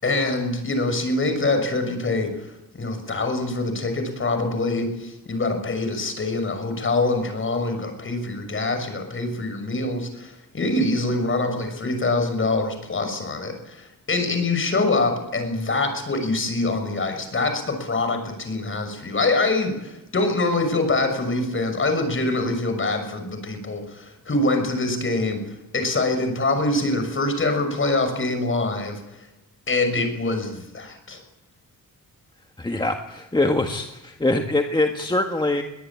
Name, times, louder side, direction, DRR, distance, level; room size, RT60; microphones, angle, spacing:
voice 1, 0.0-29.3 29.7-31.2, left 2 dB, 35° left, 6 dB, 6.3 m, -24 dB
voice 2, 32.6-35.6, left 2 dB, 15° left, 4 dB, 1.7 m, -23 dB
22.5 x 18.5 x 8.7 m, 0.91 s
wide cardioid pair, 125°, 34 cm